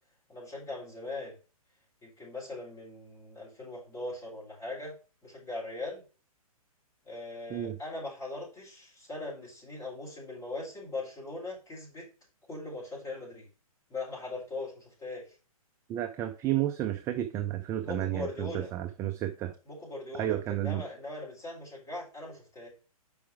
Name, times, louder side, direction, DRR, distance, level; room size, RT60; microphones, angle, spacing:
voice 1, 0.3-1.3 2.0-4.9 5.2-6.0 7.1-12.1 12.5-13.5 13.9-15.4 17.8-18.7 19.7-22.7, left 2 dB, 20° left, 4.0 m, -40 dB
voice 2, 15.9-19.5 20.1-20.8, right 13 dB, 15° right, 0.3 m, -31 dB
5.7 x 4.8 x 4.6 m
hypercardioid pair, 135°, 19 cm